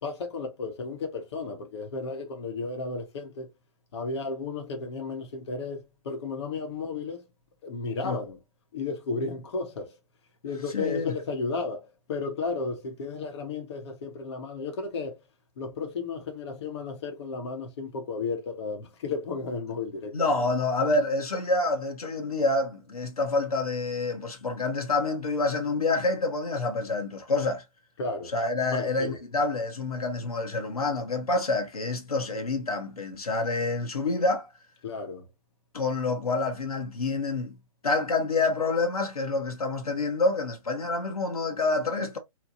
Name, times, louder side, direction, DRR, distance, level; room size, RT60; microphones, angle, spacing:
voice 1, 0.0-3.5 3.9-7.2 7.6-8.4 8.7-10.0 10.4-15.2 15.6-20.4 28.0-28.3 28.7-29.2 34.8-35.2, left 4 dB, 45° left, 0.9 m, -33 dB
voice 2, 10.7-11.1 20.1-27.6 28.3-34.5 35.7-37.6 37.8-42.2, left 3 dB, 85° left, 0.9 m, -27 dB
2.9 x 2.2 x 2.5 m
figure-of-eight pair, 135°, 19 cm